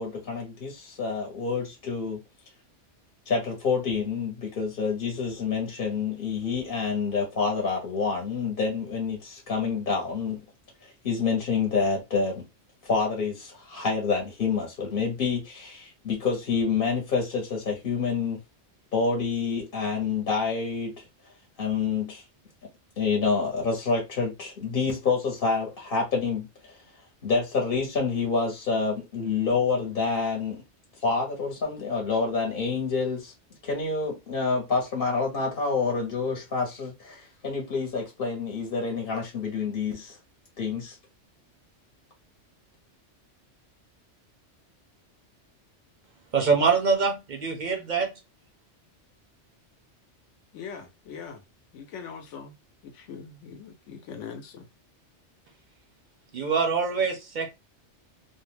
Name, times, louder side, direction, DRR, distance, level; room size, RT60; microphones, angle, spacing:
voice 1, 0.0-2.2 3.3-10.4 10.8-12.4 12.8-18.4 18.9-21.1 21.6-22.2 23.0-26.8 27.2-30.6 31.0-33.3 33.6-40.2 40.6-41.0, left 5 dB, 55° left, 0.9 m, -28 dB
voice 2, 46.3-48.1 56.3-57.5, right 5 dB, 55° right, 0.5 m, -24 dB
voice 3, 50.5-51.4 51.7-52.5 52.8-54.7, left 6 dB, 85° left, 1.0 m, -41 dB
2.5 x 2.1 x 3.1 m
omnidirectional pair, 1.2 m